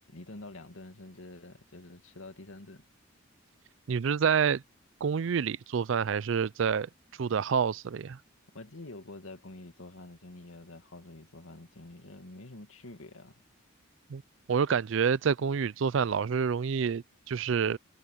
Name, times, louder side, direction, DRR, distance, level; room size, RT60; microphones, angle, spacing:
voice 1, 0.1-2.8 8.5-13.4, left 2 dB, 75° left, 2.3 m, -47 dB
voice 2, 3.9-4.6 5.0-6.9 7.2-8.2 14.1-14.2 14.5-17.8, right 6 dB, 60° right, 0.4 m, -28 dB
head